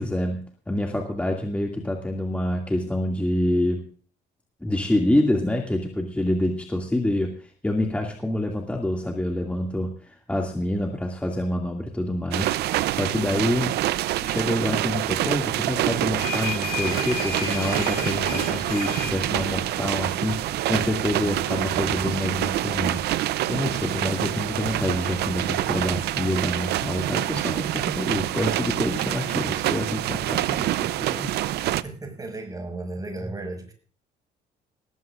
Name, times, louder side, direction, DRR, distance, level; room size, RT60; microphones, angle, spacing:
voice 1, 0.0-3.8 4.6-31.3 33.2-33.3, left 1 dB, 10° left, 0 dB, 2.3 m, -27 dB
sound 1, 12.3-31.8, right 14 dB, 75° right, 0.7 m, -26 dB
sound 2, 15.9-27.2, left 6 dB, 70° left, 5.9 m, -37 dB
voice 2, 31.6-33.7, right 2 dB, 20° right, 4 dB, 5.9 m, -35 dB
20.5 x 15.0 x 2.5 m, 0.42 s
cardioid pair, 110°, 17 cm